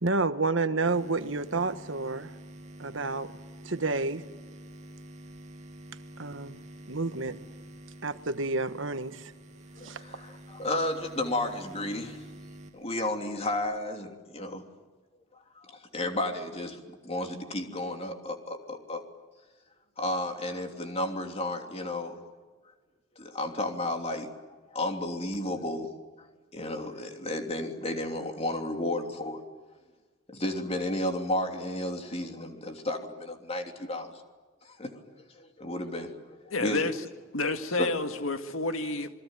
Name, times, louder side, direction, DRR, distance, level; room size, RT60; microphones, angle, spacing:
voice 1, 0.0-2.3 2.8-3.3 3.6-4.2 6.2-6.6 6.9-7.4 8.0-9.3 9.8-10.0, right 3 dB, 65° right, 1.4 m, -29 dB
Electric buzz, 0.9-13.8, right 1 dB, 35° right, 2.4 m, -48 dB
voice 2, 9.8-12.2 12.7-14.6 15.6-19.0 20.0-22.2 23.2-24.3 24.7-25.9 26.2-26.3 26.5-29.4 30.3-34.2 34.6-35.0 35.3-36.8 37.8-37.9, left 1 dB, 30° left, 3.1 m, -33 dB
voice 3, 36.5-37.1 37.3-39.1, left 3 dB, 85° left, 2.0 m, -30 dB
27.5 x 22.0 x 9.2 m
head